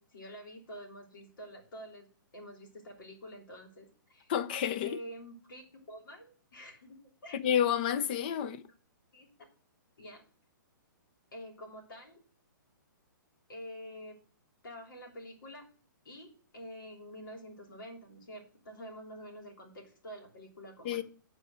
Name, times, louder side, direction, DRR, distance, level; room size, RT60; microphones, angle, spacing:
voice 1, 0.0-2.1 2.3-4.3 4.8-7.4 8.4-8.5 9.1-9.3 10.0-10.2 11.3-12.2 13.5-14.2 14.6-15.7 16.0-21.0, equal, 75° left, 3.3 m, -47 dB
voice 2, 4.3-5.0 7.3-8.6 20.8-21.0, left 9 dB, 25° left, 0.5 m, -29 dB
8.9 x 4.5 x 6.4 m
hypercardioid pair, 170°, 11 cm